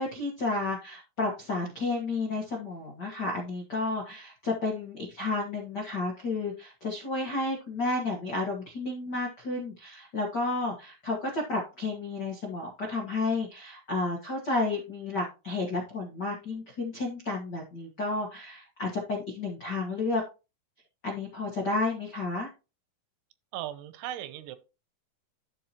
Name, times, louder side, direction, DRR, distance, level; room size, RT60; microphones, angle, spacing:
voice 1, 0.0-20.2 21.0-22.5, left 3 dB, 70° left, 1.0 m, -31 dB
voice 2, 23.5-24.6, right 12 dB, 90° right, 2.9 m, -37 dB
12.5 x 4.9 x 3.0 m
omnidirectional pair, 4.6 m